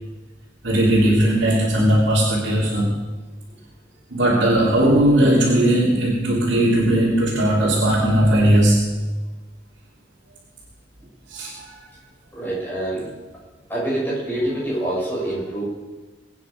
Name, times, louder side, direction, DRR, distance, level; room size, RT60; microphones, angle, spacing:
voice 1, 0.6-2.9 4.1-8.9 11.3-11.7, right 1 dB, 65° right, -7 dB, 3.2 m, -18 dB
voice 2, 12.3-13.0 13.7-15.6, right 1 dB, 10° left, -7 dB, 6.6 m, -25 dB
23.5 x 9.3 x 5.2 m, 1.3 s
head